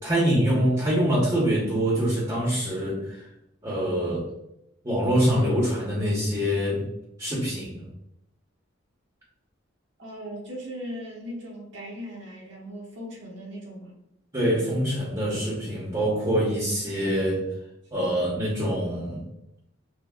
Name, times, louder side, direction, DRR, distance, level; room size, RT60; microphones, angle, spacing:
voice 1, 0.0-3.3 3.6-4.3 4.8-6.8 7.2-7.9 14.3-17.4 17.9-19.3, equal, 25° right, -5 dB, 1.0 m, -25 dB
voice 2, 10.0-14.0, equal, 70° right, -3 dB, 1.3 m, -38 dB
5.7 x 2.3 x 2.3 m, 0.83 s
head